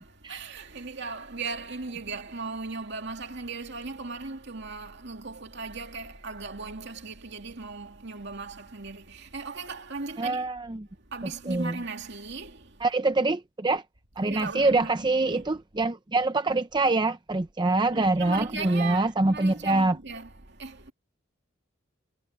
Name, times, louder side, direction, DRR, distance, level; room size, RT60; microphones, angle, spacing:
voice 1, 0.0-10.4 11.1-12.7 14.3-15.5 17.9-20.3 20.6-20.9, right 4 dB, 55° right, 2.6 m, -37 dB
voice 2, 10.2-10.9 11.5-11.8 12.8-13.8 14.2-20.0, right 2 dB, 20° right, 0.6 m, -25 dB
head